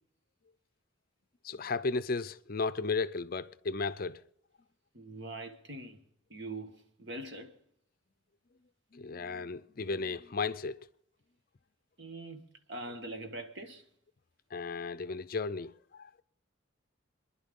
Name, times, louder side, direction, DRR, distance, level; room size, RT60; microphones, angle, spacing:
voice 1, 1.4-4.2 8.9-10.8 14.5-16.2, left 4 dB, 45° left, 0.5 m, -34 dB
voice 2, 4.9-6.0 6.3-7.5 12.0-13.8, right 2 dB, 60° right, 1.5 m, -43 dB
26.5 x 11.0 x 3.7 m
head